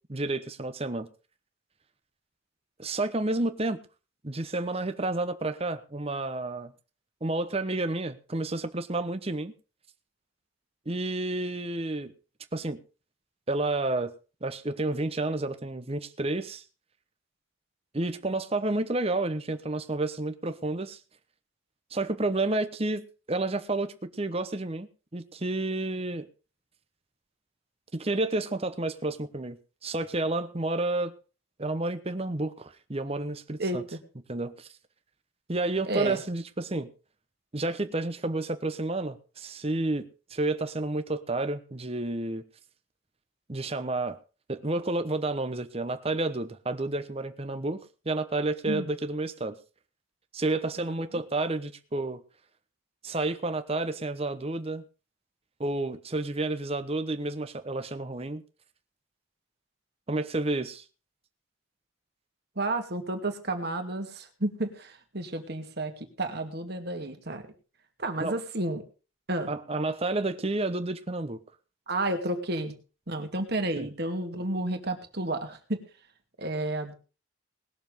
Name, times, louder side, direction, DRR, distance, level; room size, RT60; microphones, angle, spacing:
voice 1, 0.1-1.1 2.8-3.8 4.2-6.7 7.2-9.5 10.9-12.1 12.5-12.8 13.5-14.1 14.4-16.6 17.9-21.0 21.9-26.3 27.9-31.2 31.6-33.8 34.3-34.7 35.5-36.9 37.5-42.4 43.5-44.2 44.5-47.8 48.0-49.5 50.3-52.2 53.0-54.8 55.6-58.4 60.1-60.8 68.2-68.4 69.5-71.4 73.8-73.9, right 2 dB, 30° right, 1.0 m, -30 dB
voice 2, 33.6-34.0 35.9-36.2 48.7-48.9 50.8-51.0 62.6-67.4 68.0-68.8 69.3-69.5 71.9-72.7 73.1-75.8 76.4-76.9, right 2 dB, 55° right, 2.4 m, -31 dB
20.0 x 7.1 x 5.3 m
head